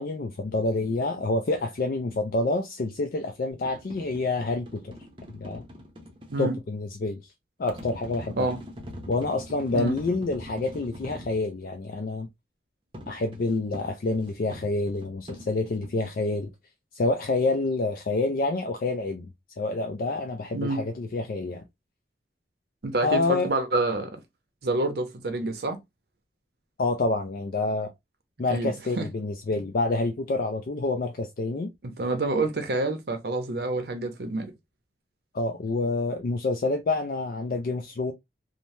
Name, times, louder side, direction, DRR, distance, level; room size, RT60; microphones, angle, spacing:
voice 1, 0.0-4.9 5.3-5.6 6.4-7.2 7.6-8.5 9.1-12.3 13.1-16.5 16.9-19.3 19.6-21.6 23.0-23.5 26.8-27.9 28.4-31.7 35.3-38.1, left 3 dB, 55° left, 0.4 m, -27 dB
sound 1, 3.5-6.4 7.7-11.4 12.9-15.9, equal, 30° right, 0.7 m, -43 dB
voice 2, 22.8-24.2 24.6-25.8 28.5-29.1 31.8-34.5, right 2 dB, 60° right, 0.7 m, -28 dB
3.2 x 2.1 x 2.6 m
head